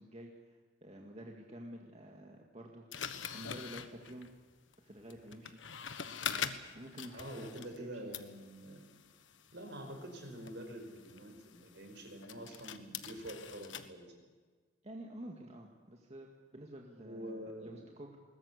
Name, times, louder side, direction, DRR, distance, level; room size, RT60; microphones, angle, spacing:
voice 1, 0.0-4.3 4.8-5.6 6.7-8.1 14.8-18.2, equal, 35° right, 1 dB, 2.1 m, -50 dB
sound 1, 2.9-7.9 8.1-13.9, left 7 dB, 80° left, 1.4 m, -44 dB
voice 2, 7.1-9.0 9.5-14.1 17.0-17.8, right 1 dB, 65° right, 4 dB, 5.3 m, -46 dB
21.5 x 19.5 x 8.4 m, 1.5 s
head